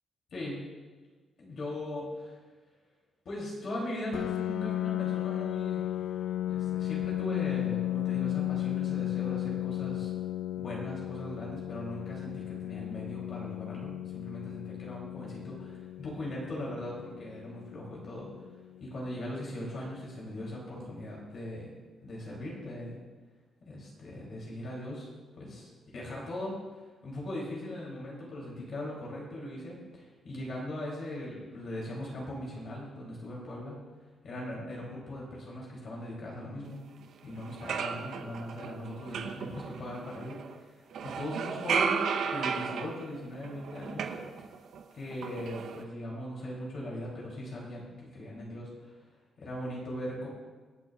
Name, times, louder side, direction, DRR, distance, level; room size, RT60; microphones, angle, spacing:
voice 1, 0.3-0.6 1.4-2.3 3.2-6.0 6.5-10.1 10.6-18.3 18.8-21.7 22.0-23.0 23.6-25.1 25.4-26.5 27.0-33.8 34.2-36.9 37.2-44.1 44.9-48.9 49.4-50.3, left 1 dB, 45° left, -4 dB, 3.1 m, -39 dB
Piano, 4.1-19.5, left 13 dB, 85° left, 0.4 m, -35 dB
sound 1, 37.0-37.1 37.4-40.5 40.9-44.8 45.1-45.8, right 6 dB, 65° right, 0.8 m, -34 dB
25.5 x 8.6 x 2.4 m, 1.4 s
cardioid pair, 170°, 0 cm